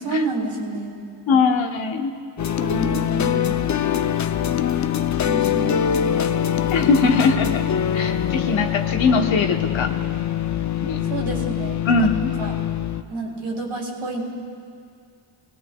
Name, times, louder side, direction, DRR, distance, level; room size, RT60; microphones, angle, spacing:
voice 1, 0.0-1.0 2.6-3.5 5.2-6.2 6.8-7.3 11.0-12.1 12.4-12.5 13.1-14.3, right 3 dB, 80° right, -2 dB, 2.8 m, -29 dB
voice 2, 1.3-2.1 6.7-7.6 7.9-9.9 10.8-11.0 11.8-12.3, left 4 dB, 70° left, 4 dB, 1.1 m, -21 dB
sound 1, 2.4-13.0, left 9 dB, 40° left, 0.4 m, -23 dB
21.0 x 17.5 x 2.3 m, 2.3 s
cardioid pair, 90°, 49 cm